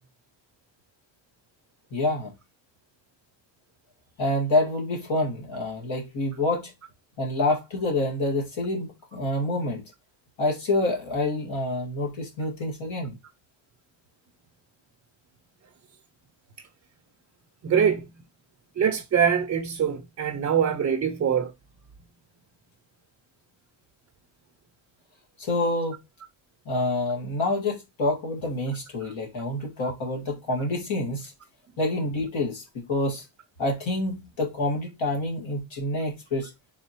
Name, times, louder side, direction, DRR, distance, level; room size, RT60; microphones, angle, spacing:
voice 1, 1.9-2.3 4.2-6.7 7.2-9.8 10.4-13.2 25.4-26.0 26.7-31.3 31.8-33.3 33.6-36.5, left 2 dB, 85° left, 1.9 m, -27 dB
voice 2, 17.6-18.1 18.8-21.5, right 7 dB, 35° right, 0.5 m, -23 dB
4.0 x 3.7 x 2.9 m
cardioid pair, 115°, 45 cm